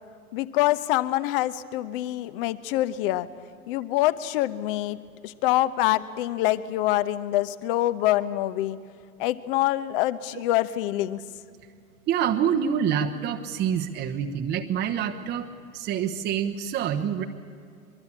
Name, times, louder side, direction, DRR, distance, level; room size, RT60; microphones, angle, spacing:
voice 1, 0.3-3.3 3.7-5.0 5.2-8.8 9.2-11.2, left 15 dB, 40° left, 16 dB, 1.1 m, -25 dB
voice 2, 12.1-15.5 15.7-17.2, right 8 dB, 25° right, 5 dB, 1.1 m, -26 dB
23.5 x 23.0 x 8.7 m, 2.3 s
figure-of-eight pair, 100°, 43 cm